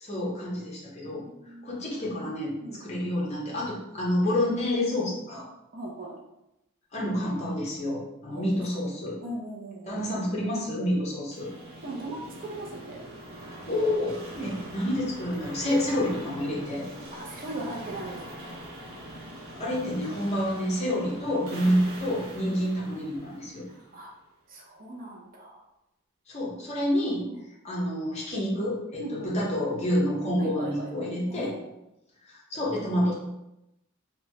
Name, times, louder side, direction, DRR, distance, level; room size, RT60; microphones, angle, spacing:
voice 1, 0.0-1.2 1.6-5.5 6.9-9.2 9.9-11.5 13.7-14.1 14.4-16.9 19.5-23.7 26.3-27.2 27.6-31.6 32.3-33.1, left 1 dB, 30° left, -4 dB, 0.7 m, -28 dB
voice 2, 1.1-1.6 2.6-2.8 5.7-6.2 8.3-8.9 9.2-10.2 11.8-13.0 14.3-14.7 17.1-18.6 20.9-21.0 21.6-21.8 22.5-22.6 23.7-24.1 24.5-25.6 27.3-27.5 29.0-29.5 30.4-31.7, right 1 dB, 40° right, -1 dB, 0.5 m, -39 dB
sound 1, 11.3-24.2, right 1 dB, 75° right, 0.8 m, -43 dB
3.0 x 2.2 x 2.7 m, 0.88 s
head